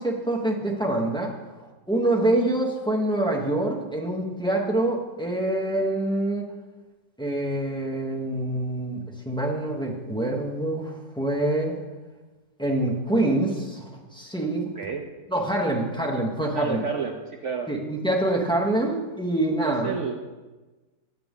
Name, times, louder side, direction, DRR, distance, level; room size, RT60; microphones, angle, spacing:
voice 1, 0.0-1.3 1.6-6.5 7.2-11.7 12.6-14.7 15.3-16.8 17.7-20.0, right 1 dB, 5° left, -3 dB, 0.6 m, -26 dB
voice 2, 16.5-17.7 19.6-20.1, right 6 dB, 70° right, 2 dB, 0.7 m, -30 dB
10.5 x 7.7 x 3.6 m, 1.2 s
omnidirectional pair, 2.0 m